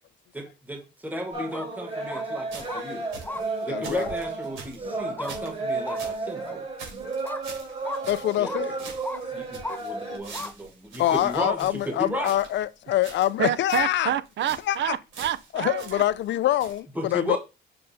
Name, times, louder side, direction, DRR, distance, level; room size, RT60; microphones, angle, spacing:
voice 1, 0.3-3.1 3.7-6.6 8.4-8.5 9.3-12.3 17.0-17.4, right 1 dB, 10° right, 1.3 m, -34 dB
sound 1, 1.3-10.2, right 3 dB, 30° right, 3.3 m, -33 dB
sound 2, 1.4-1.7 2.1-2.2 2.7-2.8 3.2-3.4 4.0-4.1 5.2-5.4 5.8-6.0 6.5-6.6 7.2-7.4 7.8-8.0 8.4-8.6 9.0-9.2 9.6-9.8 10.3-10.5 11.1-11.2, left 2 dB, 10° left, 0.4 m, -35 dB
sound 3, 2.5-6.2 6.5-6.6 6.8-8.5 8.8-12.6 13.0-13.4 13.7-14.0 14.3-14.8 15.1-16.3 16.6-16.8, right 4 dB, 85° right, 3.4 m, -44 dB
voice 2, 3.6-4.1 8.1-8.8 11.0-14.1 14.7-15.0 15.5-17.4, left 13 dB, 65° left, 0.4 m, -25 dB
voice 3, 13.4-16.0, right 11 dB, 65° right, 0.6 m, -28 dB
6.7 x 5.3 x 2.7 m
cardioid pair, 90°, 20 cm